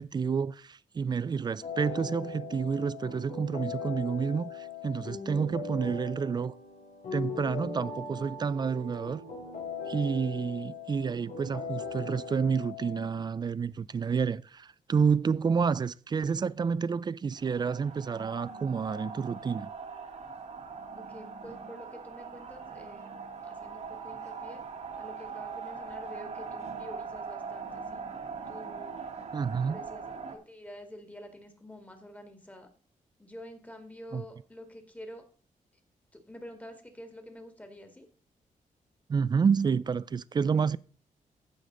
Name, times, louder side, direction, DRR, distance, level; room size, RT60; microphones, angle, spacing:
voice 1, 0.0-6.5 7.1-9.2 9.9-19.7 29.3-29.8 34.1-34.2 39.1-40.8, right 6 dB, 30° right, 0.4 m, -29 dB
sound 1, 1.6-13.2, left 4 dB, 85° left, 2.5 m, -40 dB
sound 2, 17.3-30.4, right 5 dB, 55° right, 1.5 m, -41 dB
voice 2, 20.9-23.1 23.4-24.6 25.0-28.0 28.5-29.1 29.7-30.0 30.3-32.7 33.2-35.2 36.3-38.1, left 1 dB, 10° left, 1.9 m, -48 dB
15.0 x 5.2 x 3.8 m
cardioid pair, 115°, 14 cm